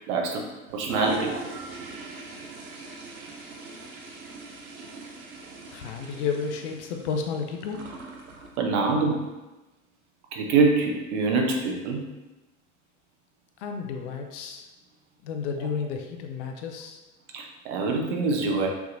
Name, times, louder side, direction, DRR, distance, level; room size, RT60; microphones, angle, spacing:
voice 1, 0.1-0.4 0.7-1.3 8.6-9.3 10.3-12.0 17.3-18.7, right 3 dB, 55° right, 1 dB, 0.9 m, -24 dB
Toilet flush, 0.7-8.6, right 3 dB, 85° right, 0.7 m, -40 dB
voice 2, 5.7-7.9 13.6-14.7 15.2-17.0, left 5 dB, 55° left, 4 dB, 0.7 m, -32 dB
5.8 x 2.9 x 2.6 m, 1.1 s
figure-of-eight pair, 80°, 42 cm